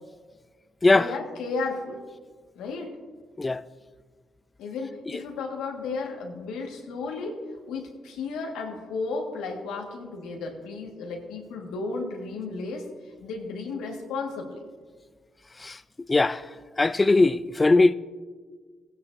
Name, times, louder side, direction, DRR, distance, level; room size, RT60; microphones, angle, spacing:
voice 1, 0.8-2.0 2.5-3.0 4.6-7.4 7.7-14.6, left 3 dB, 85° left, 1.6 m, -34 dB
voice 2, 16.1-16.4 16.8-17.9, left 2 dB, 25° left, 0.4 m, -20 dB
17.0 x 9.5 x 2.6 m
supercardioid pair, 65°, 0 cm